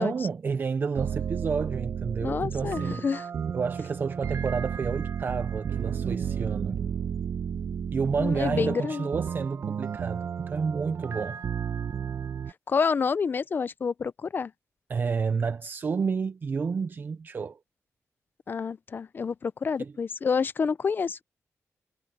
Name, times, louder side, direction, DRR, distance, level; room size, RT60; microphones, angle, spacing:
voice 1, 0.0-3.0 3.5-6.8 7.9-11.4 14.9-17.6 19.8-19.9, right 5 dB, 40° right, 0.5 m, -30 dB
sound 1, 1.0-12.5, right 7 dB, 60° right, 0.9 m, -32 dB
voice 2, 2.2-3.3 8.2-9.1 12.7-14.5 18.5-21.2, left 5 dB, 40° left, 0.5 m, -28 dB
wide cardioid pair, 170°, 5 cm